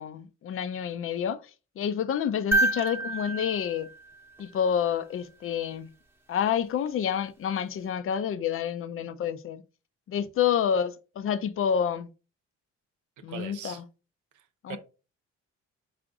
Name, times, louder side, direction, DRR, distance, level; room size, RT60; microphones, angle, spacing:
voice 1, 0.0-1.5 1.8-3.9 4.4-5.9 6.3-9.6 10.1-12.1 13.2-13.9 14.6-14.8, left 8 dB, 45° left, 0.5 m, -28 dB
sound 1, 2.5-4.8 6.9-7.0, right 2 dB, 10° right, 0.9 m, -29 dB
voice 2, 13.3-13.8 14.3-14.8, right 9 dB, 80° right, 0.9 m, -41 dB
4.8 x 2.5 x 3.6 m
cardioid pair, 90°, 30 cm